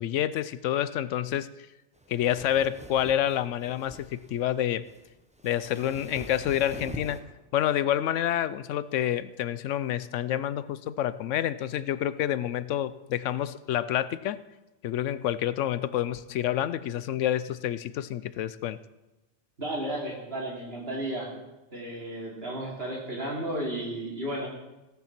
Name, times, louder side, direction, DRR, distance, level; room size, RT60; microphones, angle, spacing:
voice 1, 0.0-1.5 2.1-4.9 5.4-7.2 7.5-14.4 14.8-18.8, left 11 dB, 90° left, 16 dB, 1.0 m, -28 dB
sound 1, 2.0-7.2, equal, 5° right, 0.7 m, -44 dB
voice 2, 19.6-21.4 21.7-24.5, right 1 dB, 55° right, -2 dB, 3.1 m, -33 dB
17.0 x 7.2 x 5.9 m, 1.0 s
omnidirectional pair, 1.2 m